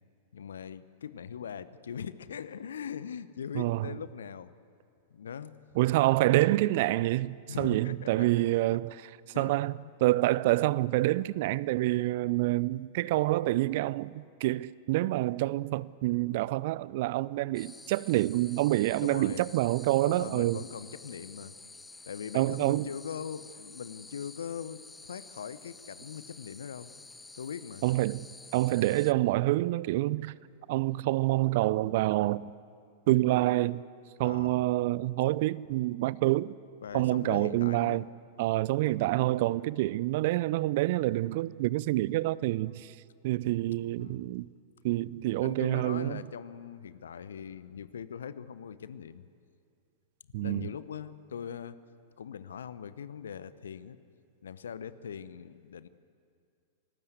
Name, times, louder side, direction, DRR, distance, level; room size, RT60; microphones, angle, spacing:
voice 1, 0.3-4.5 5.1-5.6 7.5-8.3 9.3-9.5 19.0-19.5 20.0-21.6 22.1-26.9 27.4-27.8 28.6-28.9 34.2-34.6 36.8-38.0 44.0-44.3 45.3-49.3 50.4-51.8 52.2-54.0 54.4-55.9, left 7 dB, 70° left, 0.9 m, -41 dB
voice 2, 3.5-3.9 5.8-8.9 9.4-9.7 10.0-20.6 22.3-22.9 27.8-28.3 28.5-30.4 30.7-32.4 33.1-33.8 34.2-36.5 36.9-38.1 38.4-42.9 43.2-44.5 44.8-46.2 50.3-50.7, right 17 dB, 50° right, 0.5 m, -27 dB
sound 1, 17.5-29.1, left 3 dB, 10° left, 0.6 m, -50 dB
26.5 x 19.0 x 8.1 m
figure-of-eight pair, 95°, 0 cm